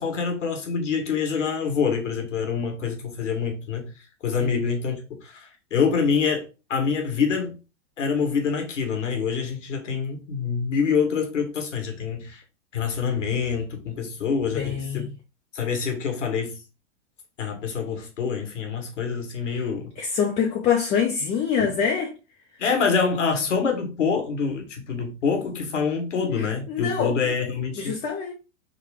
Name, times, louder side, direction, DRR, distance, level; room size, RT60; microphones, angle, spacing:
voice 1, 0.0-3.9 4.2-7.6 8.0-12.4 12.7-15.1 15.5-16.6 17.4-19.9 21.6-21.7 22.6-28.0, left 6 dB, 90° left, 1.2 m, -26 dB
voice 2, 14.5-15.1 19.5-19.6 20.0-22.1 26.3-27.1 27.8-28.3, left 7 dB, 20° left, 0.4 m, -25 dB
3.8 x 2.2 x 3.3 m
hypercardioid pair, 115°, 36 cm